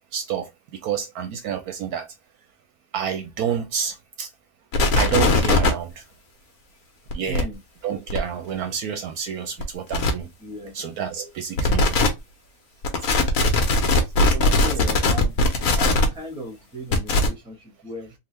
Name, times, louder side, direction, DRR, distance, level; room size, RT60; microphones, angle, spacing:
voice 1, 0.1-2.1 2.9-4.3 5.0-6.0 7.1-7.5 7.8-10.3 10.7-12.0 14.2-14.7, right 8 dB, 70° right, 1.0 m, -29 dB
sound 1, 4.7-5.7 7.1-7.4 8.1-8.2 9.6-9.7 9.9-10.1 11.6-12.1 12.8-16.1 16.9-17.3, left 3 dB, 60° left, 1.2 m, -19 dB
voice 2, 7.3-7.6 10.4-10.7 14.3-15.4 15.7-18.1, right 1 dB, 5° right, 0.7 m, -36 dB
3.7 x 2.4 x 3.2 m
omnidirectional pair, 1.8 m